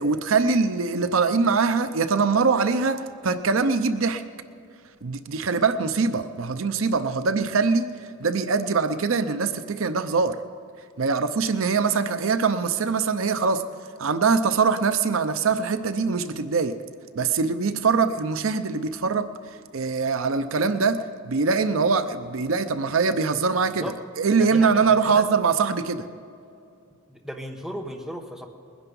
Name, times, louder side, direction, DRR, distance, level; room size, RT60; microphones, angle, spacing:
voice 1, 0.0-4.2 5.0-10.4 11.0-13.6 14.0-16.8 17.1-19.3 19.7-23.9 24.2-26.1, right 4 dB, 75° right, 10 dB, 0.6 m, -23 dB
voice 2, 24.4-25.2 27.1-28.5, equal, 5° right, 1 dB, 1.1 m, -36 dB
21.0 x 10.5 x 5.4 m, 2.5 s
head